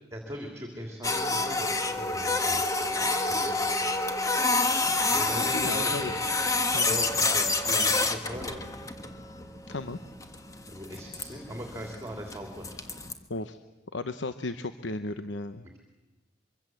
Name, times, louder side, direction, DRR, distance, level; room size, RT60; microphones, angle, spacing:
voice 1, 0.1-4.0 5.1-6.2 6.9-8.6 10.7-12.8, equal, 15° right, 2 dB, 3.1 m, -39 dB
Printer, 1.0-13.1, left 3 dB, 15° left, 1.5 m, -28 dB
voice 2, 5.4-6.3 6.7-7.0 9.7-10.0 13.3-13.6 13.9-15.6, left 2 dB, 70° left, 10 dB, 0.9 m, -35 dB
24.5 x 24.0 x 7.7 m, 1.1 s
head